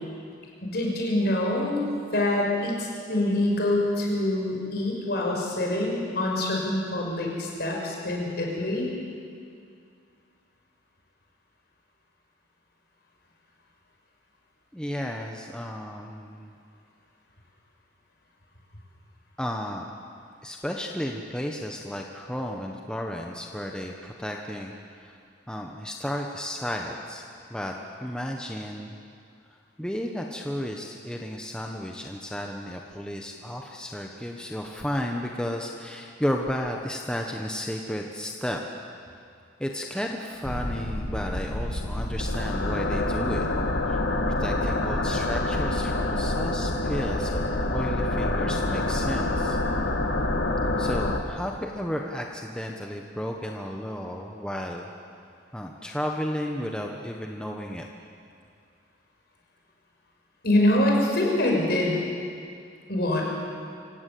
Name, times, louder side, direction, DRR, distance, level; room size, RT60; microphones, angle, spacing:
voice 1, 0.6-1.8 2.1-8.9 60.4-62.0 62.9-63.2, left 1 dB, 55° left, -1 dB, 6.0 m, -25 dB
voice 2, 14.7-16.6 19.4-19.9 20.4-25.2 25.5-27.2 27.5-27.7 28.0-28.9 29.8-38.6 39.6-43.5 43.9-44.0 44.4-49.6 50.8-54.9 55.5-57.9, equal, 5° left, 1 dB, 1.2 m, -33 dB
sound 1, 40.4-51.2, left 2 dB, 75° left, 1.8 m, -27 dB
25.0 x 17.0 x 8.5 m, 2.3 s
head